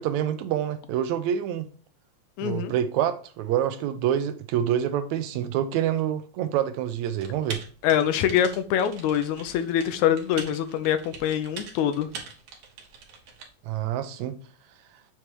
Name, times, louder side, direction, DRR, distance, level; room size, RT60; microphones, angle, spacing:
voice 1, 0.0-1.7 2.4-7.6 13.7-14.4, right 10 dB, 80° right, 1.9 m, -27 dB
voice 2, 2.4-2.7 7.8-12.1, left 9 dB, 85° left, 2.0 m, -24 dB
Typing, 7.2-13.5, right 5 dB, 60° right, 2.0 m, -42 dB
7.1 x 3.3 x 4.4 m
omnidirectional pair, 3.4 m